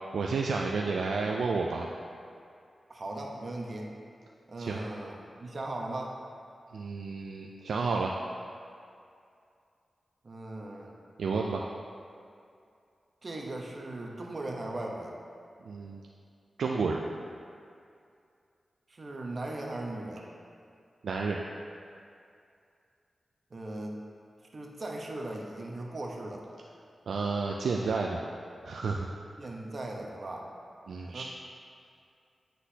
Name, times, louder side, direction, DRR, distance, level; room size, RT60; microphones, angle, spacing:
voice 1, 0.1-1.9 4.6-4.8 6.7-8.2 11.2-11.6 15.6-16.0 16.6-17.0 21.0-21.4 27.1-28.2 28.6-29.1 30.9-31.2, right 4 dB, 85° right, -1 dB, 0.3 m, -31 dB
voice 2, 2.9-3.9 4.5-6.2 10.2-11.0 13.2-15.2 18.9-20.3 23.5-24.0 24.5-26.5 29.4-30.5 31.1-31.2, right 2 dB, 50° right, 0 dB, 0.9 m, -38 dB
9.8 x 3.9 x 2.8 m, 2.4 s
cardioid pair, 55°, 0 cm